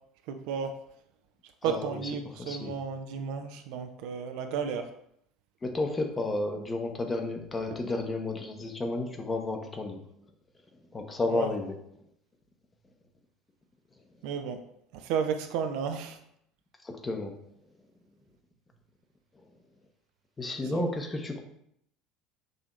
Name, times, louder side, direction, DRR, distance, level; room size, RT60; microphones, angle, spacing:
voice 1, 0.3-0.7 1.6-4.9 7.7-7.8 11.3-11.5 14.2-14.6 14.9-16.2 20.7-20.9, right 6 dB, 60° right, 6 dB, 0.4 m, -33 dB
voice 2, 1.6-2.0 2.4-2.8 5.6-10.0 10.9-11.7 16.8-17.3 20.4-21.4, left 2 dB, 20° left, 4 dB, 0.8 m, -32 dB
6.3 x 2.8 x 2.5 m, 0.72 s
figure-of-eight pair, 65°, 0 cm